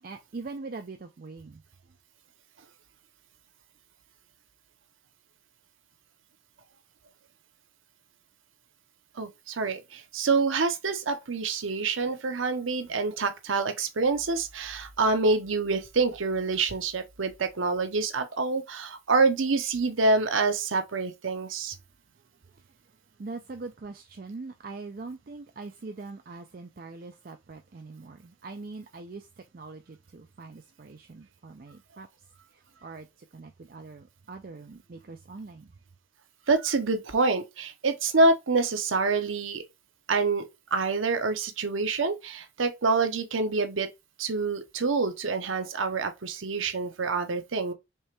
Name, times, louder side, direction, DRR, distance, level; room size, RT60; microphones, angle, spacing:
voice 1, 0.0-1.6 22.6-22.7 23.2-32.1 32.5-35.7, right 3 dB, 45° right, 0.4 m, -42 dB
voice 2, 9.2-21.7 36.5-39.6 40.1-40.5 40.7-43.9 44.2-47.7, right 3 dB, 85° right, 0.8 m, -26 dB
4.5 x 3.3 x 3.3 m
head